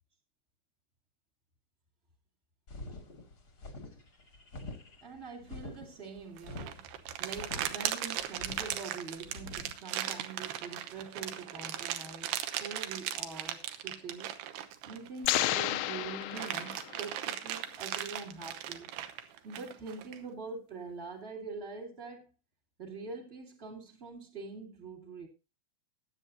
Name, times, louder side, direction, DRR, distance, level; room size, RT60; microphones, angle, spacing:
sound 1, 2.7-9.7, left 2 dB, 45° left, 1.2 m, -46 dB
voice 1, 5.0-14.3 14.8-18.9 19.4-22.3 22.8-25.3, right 4 dB, 35° right, 0.9 m, -44 dB
sound 2, 6.4-15.6 16.0-20.2, right 11 dB, 75° right, 2.5 m, -38 dB
sound 3, 15.2-17.1, left 15 dB, 80° left, 2.6 m, -32 dB
20.0 x 8.0 x 2.7 m
omnidirectional pair, 5.8 m